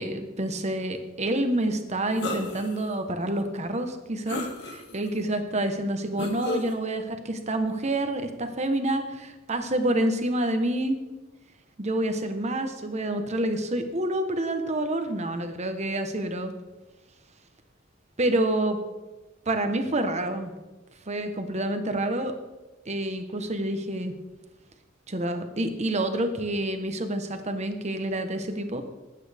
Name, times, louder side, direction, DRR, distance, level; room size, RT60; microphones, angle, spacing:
voice 1, 0.0-11.0 11.8-16.5 18.2-18.8 19.5-20.5 21.1-22.3 22.9-24.1 25.1-28.8, right 1 dB, 35° right, 7 dB, 1.2 m, -28 dB
sound 1, 2.2-2.8 3.3-3.4 4.3-5.1 6.2-6.7, left 1 dB, 60° left, 1.8 m, -33 dB
20.5 x 9.0 x 3.5 m, 1.1 s
head